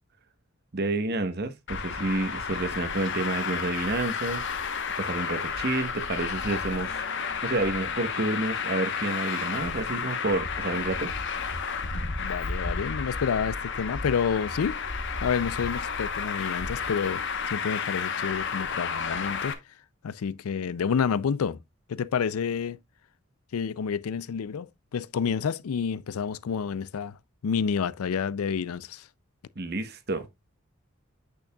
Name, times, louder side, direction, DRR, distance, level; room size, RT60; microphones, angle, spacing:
voice 1, 0.7-4.4 5.0-7.0 7.4-11.1 29.6-30.3, right 2 dB, 50° right, 1.0 m, -29 dB
Traffic noise roadway noise, 1.7-19.5, left 5 dB, 55° left, 1.0 m, -31 dB
voice 2, 12.2-14.8 15.2-19.6 20.0-21.6 21.9-22.8 23.5-27.2 27.4-29.0, left 6 dB, 80° left, 0.4 m, -29 dB
8.5 x 6.4 x 2.3 m
head